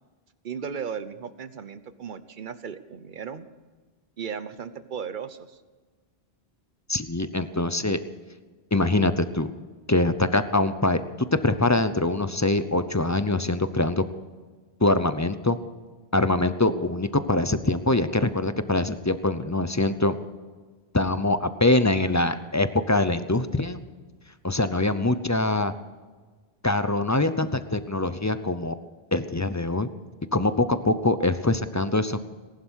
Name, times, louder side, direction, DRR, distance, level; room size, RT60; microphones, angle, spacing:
voice 1, 0.4-3.5 4.2-5.6, right 7 dB, 55° right, 13 dB, 1.0 m, -36 dB
voice 2, 6.9-8.0 8.7-9.5 9.9-14.0 14.8-15.6 16.1-20.1 20.9-23.8 24.4-25.7 26.6-28.8 29.1-29.9 30.3-32.3, left 2 dB, 20° left, 11 dB, 0.6 m, -23 dB
19.0 x 11.5 x 6.3 m, 1.4 s
omnidirectional pair, 1.1 m